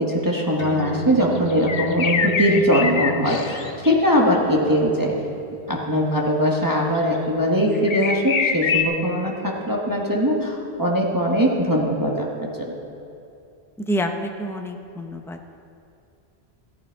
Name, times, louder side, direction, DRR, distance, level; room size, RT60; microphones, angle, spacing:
voice 1, 0.0-5.2 5.7-12.7, equal, 20° right, -2 dB, 1.2 m, -21 dB
sound 1, 0.6-7.5, right 3 dB, 60° left, 1.7 m, -40 dB
sound 2, 1.2-3.9 7.0-7.1 7.8-8.8, left 6 dB, 45° left, 0.6 m, -24 dB
voice 2, 13.8-15.4, equal, 5° left, 4 dB, 0.5 m, -28 dB
14.0 x 11.0 x 4.6 m, 2.6 s
omnidirectional pair, 1.1 m